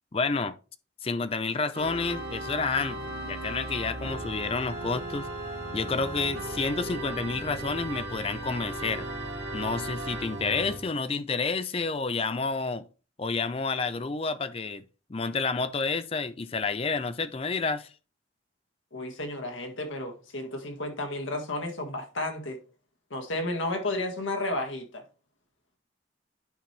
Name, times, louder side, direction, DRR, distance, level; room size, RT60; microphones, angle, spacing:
voice 1, 0.1-0.6 1.0-5.3 5.7-9.1 9.5-12.8 13.2-14.8 15.1-17.9, left 4 dB, 30° left, 0.4 m, -30 dB
Organ, 1.7-10.8, right 1 dB, 55° right, 2.4 m, -36 dB
voice 2, 18.9-22.6 23.1-25.0, left 2 dB, 85° left, 1.8 m, -32 dB
10.5 x 4.4 x 3.3 m
head